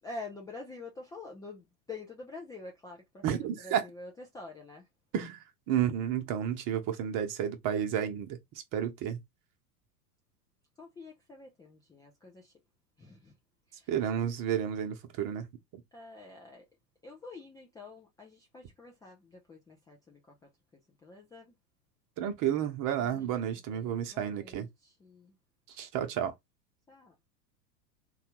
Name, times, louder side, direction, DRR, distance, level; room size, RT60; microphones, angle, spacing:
voice 1, 0.0-4.9 10.8-12.5 13.0-13.3 13.7-13.9 15.9-16.7 17.0-21.5 23.0-25.3 26.9-27.1, left 3 dB, 10° left, 0.3 m, -47 dB
voice 2, 3.2-3.8 5.1-8.4 8.7-9.2 13.9-15.5 22.2-24.7 25.8-26.3, right 9 dB, 40° right, 0.9 m, -31 dB
3.2 x 2.3 x 2.9 m
hypercardioid pair, 95°, 49 cm